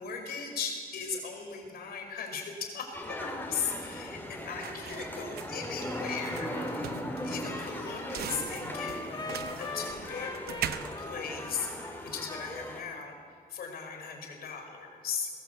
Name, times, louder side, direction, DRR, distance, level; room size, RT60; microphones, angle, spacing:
voice 1, 0.0-4.2 4.4-6.5 7.2-11.7 12.0-13.2 13.5-15.3, left 6 dB, 75° left, 3 dB, 5.2 m, -38 dB
sound 1, 2.9-12.8, left 1 dB, 10° left, 3.7 m, -39 dB
sound 2, 3.1-12.2, right 9 dB, 85° right, 0.9 m, -42 dB
Trumpet, 6.1-6.3 6.5-12.8, left 3 dB, 25° left, 2.3 m, -42 dB
22.0 x 17.5 x 8.1 m, 2.1 s
cardioid pair, 125°, 16 cm